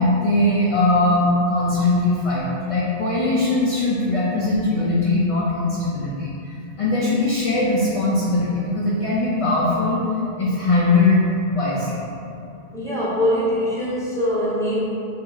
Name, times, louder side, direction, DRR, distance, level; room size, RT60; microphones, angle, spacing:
voice 1, 0.0-10.0 10.4-11.2 11.5-12.0, left 2 dB, 50° left, -7 dB, 0.4 m, -20 dB
voice 2, 12.7-14.8, equal, 5° left, -8 dB, 0.7 m, -22 dB
2.7 x 2.7 x 3.8 m, 2.6 s
omnidirectional pair, 1.0 m